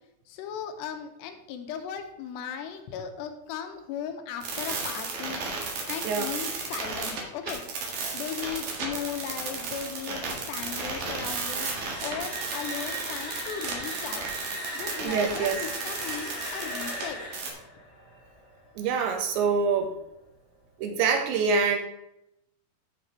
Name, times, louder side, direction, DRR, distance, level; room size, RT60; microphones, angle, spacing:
voice 1, 0.3-5.4 5.9-7.6 8.1-11.7 12.0-14.3 14.7-17.2, left 8 dB, 80° left, 6 dB, 2.9 m, -37 dB
sound 1, 4.4-17.0 17.3-17.5, right 4 dB, 55° right, 3.0 m, -33 dB
sound 2, 10.4-19.2, right 1 dB, 30° left, 2.6 m, -39 dB
voice 2, 15.0-15.6 18.8-19.9 20.8-21.8, right 5 dB, 85° right, 4 dB, 3.5 m, -25 dB
13.5 x 6.4 x 3.2 m, 0.83 s
omnidirectional pair, 5.1 m